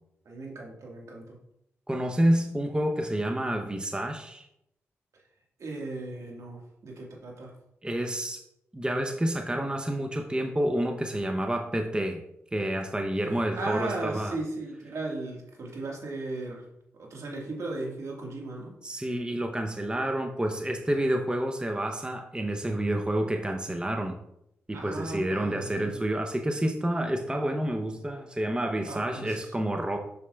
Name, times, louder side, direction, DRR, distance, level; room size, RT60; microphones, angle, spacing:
voice 1, 0.3-1.4 5.6-7.6 13.3-16.7 17.0-18.7 21.0-21.1 24.7-26.1 28.9-29.5, right 2 dB, 65° right, -1 dB, 1.7 m, -37 dB
voice 2, 1.9-4.5 7.8-8.4 8.7-12.2 12.5-14.4 18.8-24.2 24.7-30.0, right 1 dB, 15° right, 4 dB, 0.8 m, -29 dB
7.0 x 6.3 x 2.3 m, 0.80 s
supercardioid pair, 45°, 6 cm